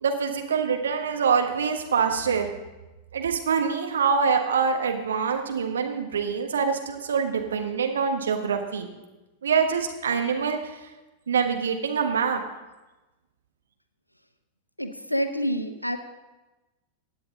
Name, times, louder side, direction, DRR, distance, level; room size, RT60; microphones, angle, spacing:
voice 1, 0.0-2.5 3.1-8.9 9.4-10.6 11.3-12.4, right 6 dB, 65° right, 4 dB, 1.3 m, -25 dB
voice 2, 14.8-16.0, equal, 90° left, 9 dB, 0.7 m, -27 dB
16.0 x 8.7 x 3.9 m, 1.1 s
figure-of-eight pair, 90°, 0 cm